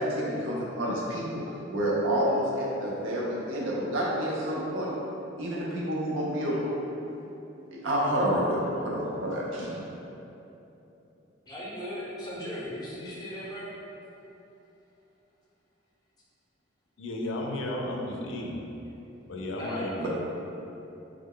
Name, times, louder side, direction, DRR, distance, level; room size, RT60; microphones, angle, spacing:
voice 1, 0.0-1.4 1.7-4.9 5.4-6.7 7.7-9.8 20.0-20.1, equal, 85° right, -5 dB, 0.6 m, -29 dB
voice 2, 11.5-13.7 19.5-20.1, equal, 20° left, -6 dB, 0.6 m, -37 dB
voice 3, 17.0-18.6 19.3-19.9, left 1 dB, 75° left, 0 dB, 0.4 m, -33 dB
3.4 x 2.1 x 3.7 m, 2.9 s
head